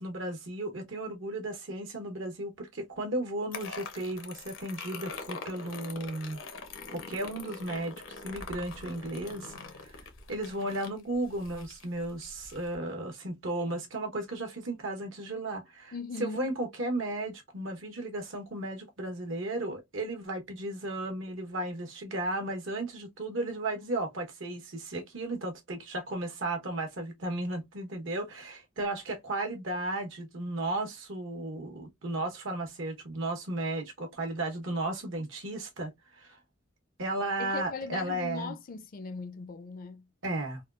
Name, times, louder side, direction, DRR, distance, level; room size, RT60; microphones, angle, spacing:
voice 1, 0.0-6.4 6.9-9.5 9.8-10.0 10.3-15.9 16.2-36.4 37.0-38.5 40.2-40.6, right 2 dB, 75° right, 1.1 m, -34 dB
sound 1, 3.5-12.8, left 4 dB, 80° left, 0.8 m, -44 dB
voice 2, 15.9-16.5 37.4-40.1, left 4 dB, 45° left, 0.4 m, -39 dB
3.5 x 2.3 x 2.4 m
head